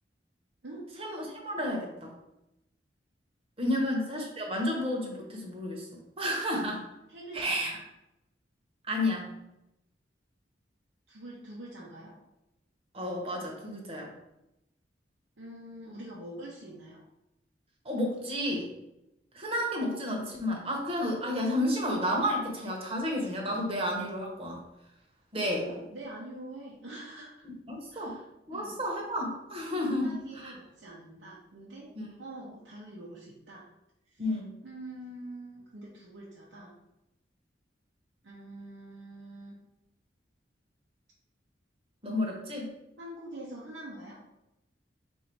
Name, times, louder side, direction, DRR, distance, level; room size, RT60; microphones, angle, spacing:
voice 1, 1.0-2.1 3.6-5.9 6.2-6.8 7.3-7.7 8.9-9.3 12.9-14.1 17.8-18.7 19.3-24.6 25.3-25.6 27.7-28.2 28.5-30.5 31.9-32.1 34.2-34.5 42.0-42.7, left 1 dB, 30° right, -1 dB, 1.0 m, -31 dB
voice 2, 7.1-7.8 11.1-12.1 15.4-17.0 25.6-27.4 27.9-28.8 29.9-31.9 32.2-33.7 34.1-34.2 34.6-36.7 38.2-39.6 43.0-44.2, right 1 dB, 85° right, -6 dB, 0.8 m, -45 dB
4.0 x 2.7 x 4.6 m, 0.90 s
head